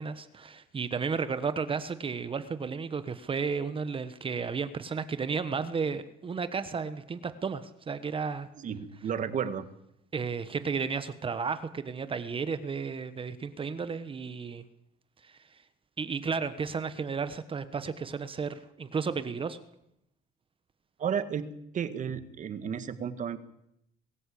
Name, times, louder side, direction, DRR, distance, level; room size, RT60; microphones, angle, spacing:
voice 1, 0.0-8.5 10.1-14.6 15.2-15.6 16.0-19.6, right 5 dB, 30° right, 12 dB, 1.3 m, -33 dB
voice 2, 8.6-9.7 21.0-21.5 21.7-23.4, right 7 dB, 50° right, 12 dB, 1.8 m, -32 dB
22.5 x 13.5 x 8.6 m, 0.79 s
cardioid pair, 110°, 17 cm